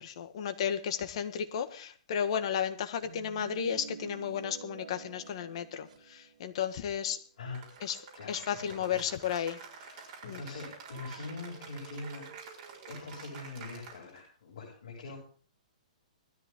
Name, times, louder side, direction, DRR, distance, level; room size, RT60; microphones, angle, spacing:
voice 1, 0.0-7.2 7.8-8.0 8.3-9.6 10.2-10.4, left 8 dB, 45° left, 9 dB, 1.7 m, -33 dB
sound 1, 3.0-6.7 7.1-7.2 7.7-7.8 8.6-9.0, right 6 dB, 65° right, 2.8 m, -48 dB
voice 2, 7.4-7.7 8.1-9.1 9.7-15.2, left 3 dB, 65° left, -2 dB, 7.4 m, -44 dB
Cheering / Applause, 7.5-14.3, right 6 dB, 30° right, 4.8 m, -48 dB
20.0 x 13.5 x 3.8 m, 0.43 s
hypercardioid pair, 170°, 4 cm